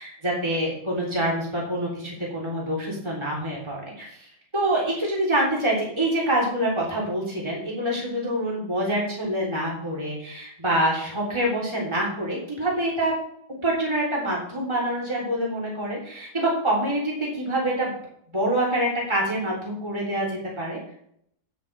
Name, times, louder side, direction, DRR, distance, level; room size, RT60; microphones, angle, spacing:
voice 1, 0.0-13.1 13.6-17.9 18.3-20.8, right 1 dB, 15° right, -4 dB, 3.4 m, -26 dB
16.0 x 7.4 x 3.4 m, 0.68 s
omnidirectional pair, 1.7 m